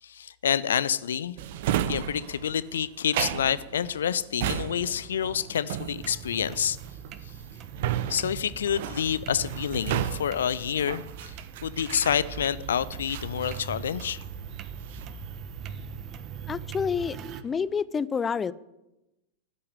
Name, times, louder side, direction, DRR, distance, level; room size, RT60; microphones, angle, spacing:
voice 1, 0.0-1.4 1.9-6.8 8.1-11.3 11.6-14.2, left 8 dB, 65° left, 0.5 m, -28 dB
Drawer open or close, 1.4-12.6 13.1-14.4 14.7-15.2, right 11 dB, 55° right, 0.8 m, -34 dB
sound 1, 5.7-17.4, right 6 dB, 35° right, 1.2 m, -41 dB
voice 2, 16.5-17.2 17.4-18.5, left 6 dB, 20° left, 0.5 m, -28 dB
13.0 x 8.5 x 9.4 m
figure-of-eight pair, 90°, 0 cm